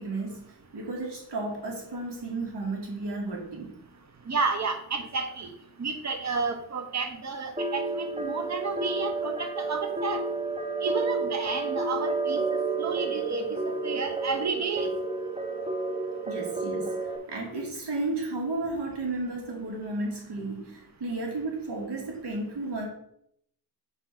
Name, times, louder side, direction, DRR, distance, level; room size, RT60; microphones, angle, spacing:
voice 1, 0.0-3.8 16.3-17.0 17.3-22.9, right 2 dB, 75° right, 0 dB, 2.0 m, -33 dB
voice 2, 4.3-5.5 5.8-10.2 10.8-12.4 12.8-14.9, right 4 dB, 40° right, 6 dB, 0.9 m, -31 dB
sound 1, 7.6-17.2, right 3 dB, 15° right, 0.7 m, -30 dB
5.6 x 4.1 x 5.8 m, 0.72 s
wide cardioid pair, 170°, 41 cm